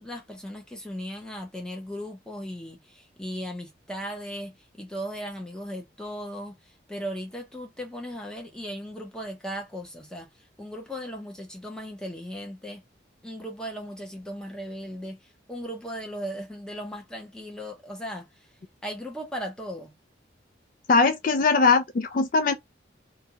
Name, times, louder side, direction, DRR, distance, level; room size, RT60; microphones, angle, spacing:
voice 1, 0.0-6.6 6.9-10.3 10.6-12.8 13.2-15.2 15.5-18.3 18.8-19.9, equal, 5° left, 0.7 m, -37 dB
voice 2, 20.9-22.5, left 4 dB, 45° left, 0.3 m, -21 dB
2.6 x 2.3 x 2.7 m
head